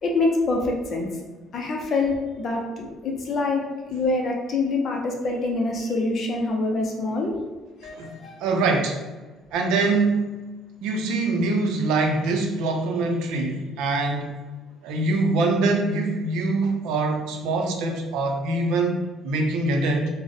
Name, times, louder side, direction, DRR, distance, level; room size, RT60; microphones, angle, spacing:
voice 1, 0.0-1.1 1.5-3.6 3.9-7.3 7.8-8.4, left 3 dB, 35° left, 1 dB, 0.5 m, -25 dB
voice 2, 8.0-9.0 9.5-10.4 10.8-14.3 14.8-19.0 19.2-20.1, right 3 dB, 80° right, 2 dB, 0.5 m, -24 dB
3.7 x 2.1 x 3.5 m, 1.2 s
cardioid pair, 180°, 0 cm